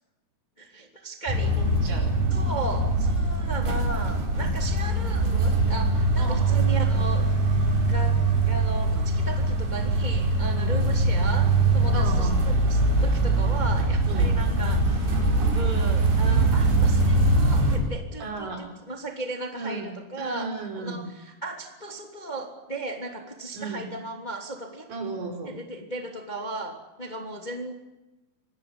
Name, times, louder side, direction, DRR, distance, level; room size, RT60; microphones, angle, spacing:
voice 1, 0.6-1.5 2.3-7.3 7.9-8.2 8.4-25.0 25.5-27.7, right 1 dB, 15° left, 3 dB, 2.2 m, -36 dB
sound 1, 1.3-17.8, right 2 dB, 60° right, 6.9 m, -22 dB
voice 2, 1.4-2.5 4.9-5.1 6.2-6.6 10.4-11.0 11.9-12.4 14.1-14.3 18.2-18.7 19.5-19.9 20.2-21.0 23.5-23.8 24.9-25.6, right 3 dB, 80° right, 3 dB, 7.3 m, -36 dB
26.0 x 20.0 x 9.7 m, 0.99 s
omnidirectional pair, 5.1 m